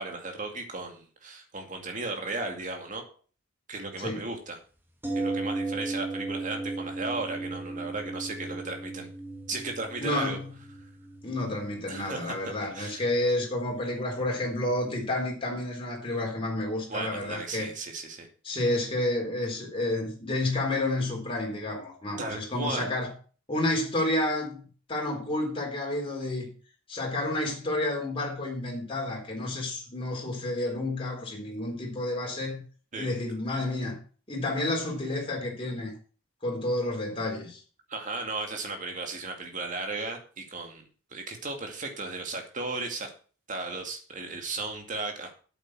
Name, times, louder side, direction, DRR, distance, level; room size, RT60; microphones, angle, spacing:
voice 1, 0.0-3.0 3.7-4.6 5.1-9.1 9.5-10.4 11.9-13.0 16.9-18.3 22.2-22.9 32.9-33.1 37.9-40.8 41.1-43.1 43.5-45.3, right 3 dB, 40° right, 2.3 m, -35 dB
sound 1, 5.0-14.9 15.2-15.3, right 2 dB, 10° right, 1.6 m, -37 dB
voice 2, 10.0-10.5 11.2-17.7 18.4-23.1 23.5-26.5 26.9-32.6 32.9-34.0 34.3-35.9 36.4-37.6, left 1 dB, 25° left, 4.0 m, -30 dB
8.5 x 8.3 x 6.2 m
head